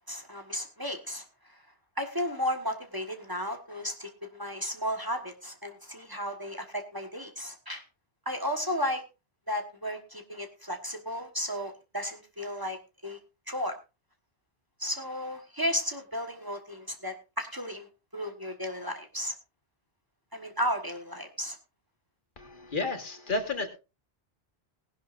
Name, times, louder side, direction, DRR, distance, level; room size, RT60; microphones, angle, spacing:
voice 1, 0.1-1.2 2.0-7.8 8.2-9.0 9.5-13.2 13.5-13.8 14.8-19.3 20.3-21.6, equal, 20° right, 4 dB, 1.3 m, -34 dB
voice 2, 22.4-23.7, left 3 dB, 50° left, 7 dB, 1.6 m, -32 dB
18.5 x 11.5 x 2.5 m, 0.29 s
omnidirectional pair, 1.1 m